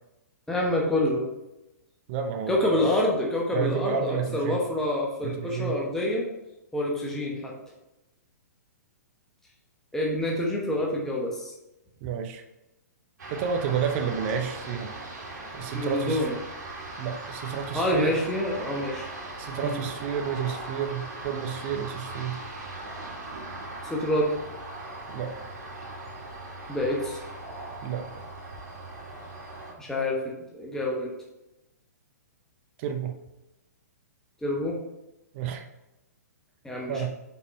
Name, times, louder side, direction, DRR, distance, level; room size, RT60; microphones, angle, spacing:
voice 1, 0.5-1.2 2.5-6.3 6.7-7.5 9.9-11.5 15.7-16.3 17.7-19.1 19.6-19.8 23.8-24.3 26.7-27.2 29.8-31.1 34.4-34.8 36.6-37.1, left 1 dB, 5° left, -3 dB, 1.0 m, -27 dB
voice 2, 2.1-2.9 3.5-4.6 5.2-5.8 12.0-12.4 13.3-14.9 15.5-16.3 17.0-18.2 19.4-22.4 25.1-25.5 27.8-28.0 32.8-33.1 35.3-35.6 36.9-37.1, right 7 dB, 45° right, 5 dB, 0.7 m, -30 dB
sound 1, 13.2-29.7, right 2 dB, 80° right, 2.0 m, -39 dB
5.5 x 4.1 x 4.2 m, 0.94 s
hypercardioid pair, 130°, 9 cm